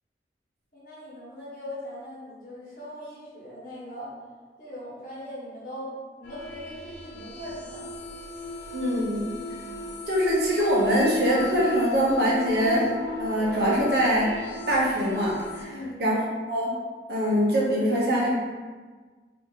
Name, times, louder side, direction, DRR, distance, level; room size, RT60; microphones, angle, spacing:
voice 1, 0.7-4.2 4.6-7.9 15.7-16.0, equal, 50° left, -9 dB, 1.3 m, -40 dB
sound 1, 6.2-15.6, left 2 dB, 70° left, 0.6 m, -38 dB
voice 2, 8.7-9.3 10.1-12.9 13.2-14.4 14.7-16.2 16.5-16.7 17.1-18.4, equal, 65° right, -5 dB, 0.8 m, -23 dB
2.7 x 2.7 x 3.6 m, 1.4 s
head